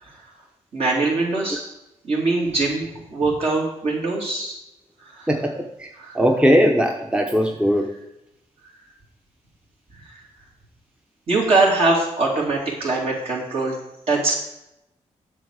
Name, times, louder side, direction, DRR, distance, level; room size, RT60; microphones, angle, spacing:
voice 1, 0.7-1.7 2.0-4.6 5.1-5.3 6.0-6.2 10.1-10.2 11.3-13.8 14.1-14.4, right 3 dB, 55° right, -3 dB, 2.9 m, -22 dB
voice 2, 5.3-7.9, equal, 10° right, 2 dB, 0.8 m, -20 dB
7.6 x 6.4 x 4.8 m, 0.86 s
cardioid pair, 80°, 12 cm